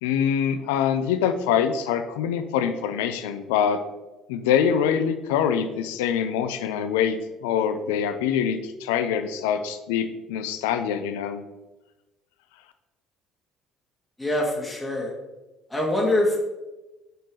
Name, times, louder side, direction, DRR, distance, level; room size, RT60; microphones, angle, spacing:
voice 1, 0.0-3.8 4.3-11.4, left 8 dB, 75° left, 9 dB, 0.5 m, -24 dB
voice 2, 14.2-15.1 15.7-16.4, left 1 dB, 10° left, -2 dB, 1.9 m, -24 dB
6.5 x 4.5 x 4.8 m, 1.1 s
hypercardioid pair, 55°, 0 cm